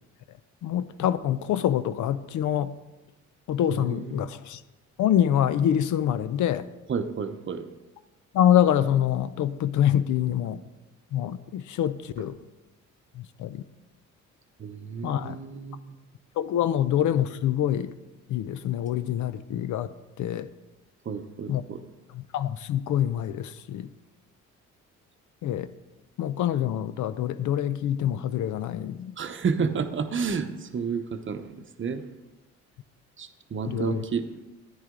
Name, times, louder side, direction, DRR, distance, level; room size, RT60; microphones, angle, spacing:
voice 1, 0.6-2.7 3.5-4.6 5.0-6.7 8.3-10.6 11.1-12.4 13.2-13.6 15.0-15.4 16.4-17.9 18.3-19.9 20.2-20.5 21.5-21.6 22.1-23.9 25.4-25.7 26.2-29.1 33.7-34.0, left 10 dB, 75° left, 14 dB, 0.6 m, -25 dB
voice 2, 3.7-4.3 6.9-7.6 14.6-16.0 21.1-21.8 29.2-31.5 31.8-32.0 33.2-34.4, right 5 dB, 40° right, 9 dB, 0.8 m, -31 dB
10.5 x 9.9 x 3.8 m, 1.1 s
cardioid pair, 90°, 30 cm